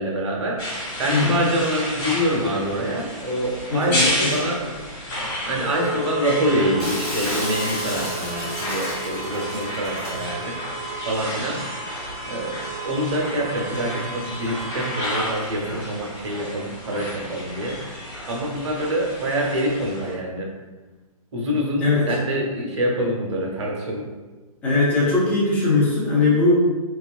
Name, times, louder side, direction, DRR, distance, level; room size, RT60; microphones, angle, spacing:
voice 1, 0.0-4.6 5.4-11.6 12.2-17.8 18.3-20.5 21.3-24.1, equal, 50° right, -1 dB, 0.7 m, -26 dB
sound 1, 0.6-20.1, equal, 25° left, 1.4 m, -30 dB
voice 2, 3.7-4.0 21.8-22.0 24.6-26.5, left 3 dB, 10° left, -7 dB, 0.6 m, -19 dB
Shatter, 6.8-10.2, left 1 dB, 90° left, 1.2 m, -32 dB
3.1 x 2.3 x 2.4 m, 1.3 s
figure-of-eight pair, 125°, 19 cm